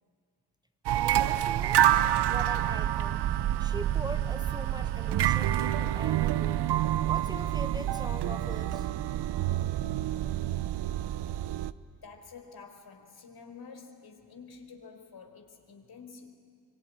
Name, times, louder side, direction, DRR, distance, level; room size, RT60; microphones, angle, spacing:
voice 1, 0.9-1.8 2.3-3.2 3.6-6.6 7.1-8.9, right 1 dB, 10° right, 9 dB, 1.4 m, -42 dB
sound 1, 0.9-11.7, right 12 dB, 60° right, 0.9 m, -28 dB
voice 2, 11.8-16.4, left 5 dB, 55° left, 5 dB, 4.7 m, -49 dB
25.0 x 24.0 x 9.8 m, 2.1 s
hypercardioid pair, 45°, 45 cm